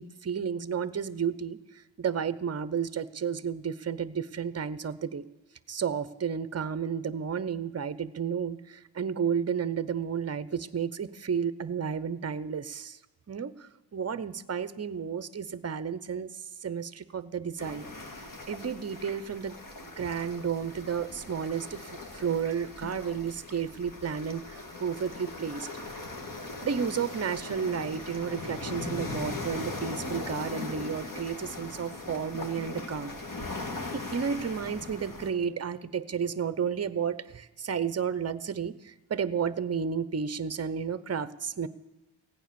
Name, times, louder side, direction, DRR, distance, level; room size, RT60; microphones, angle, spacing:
voice 1, 0.0-1.6 2.0-5.3 5.7-13.0 13.3-16.3 16.6-17.9 18.5-19.5 19.8-25.7 26.6-33.1 33.9-41.7, right 7 dB, 35° right, 16 dB, 0.7 m, -32 dB
sound 1, 17.6-35.3, left 2 dB, 45° left, 1.9 m, -39 dB
16.0 x 9.1 x 6.9 m, 1.0 s
cardioid pair, 70°, 46 cm